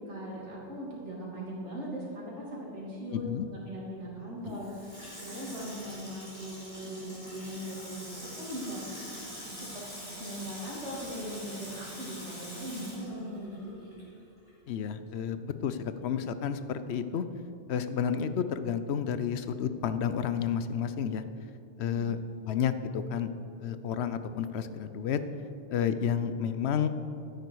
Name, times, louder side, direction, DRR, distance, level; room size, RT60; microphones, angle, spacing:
voice 1, 0.0-3.2 3.5-8.8 9.6-9.7 10.2-13.7 21.8-22.0, equal, 75° right, -5 dB, 3.2 m, -40 dB
voice 2, 3.1-3.5 4.4-4.6 14.7-17.2 17.7-21.2 21.8-22.2 22.5-23.3 23.6-25.2 25.7-26.9, left 8 dB, 70° left, 11 dB, 0.9 m, -31 dB
Water tap faucet / Sink (filling or washing), 4.5-14.2 14.5-14.6, equal, 20° left, 3.3 m, -44 dB
13.0 x 10.0 x 4.7 m, 2.6 s
omnidirectional pair, 1.2 m